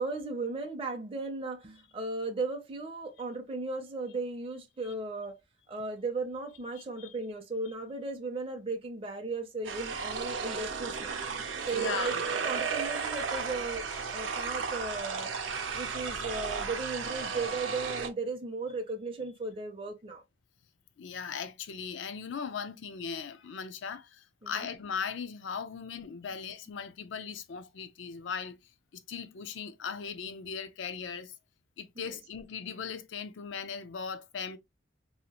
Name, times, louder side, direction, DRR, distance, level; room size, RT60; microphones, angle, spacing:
voice 1, 0.0-5.4 5.7-11.2 11.6-12.1 12.4-13.8 14.1-15.3 15.7-20.2 24.4-24.7 32.0-32.2, right 3 dB, 30° right, 0.5 m, -36 dB
voice 2, 6.8-7.1 11.7-12.2 21.0-28.6 28.9-31.3 31.8-34.6, left 6 dB, 75° left, 0.5 m, -38 dB
sound 1, 9.6-18.1, right 5 dB, 85° right, 0.6 m, -34 dB
2.8 x 2.4 x 2.8 m
head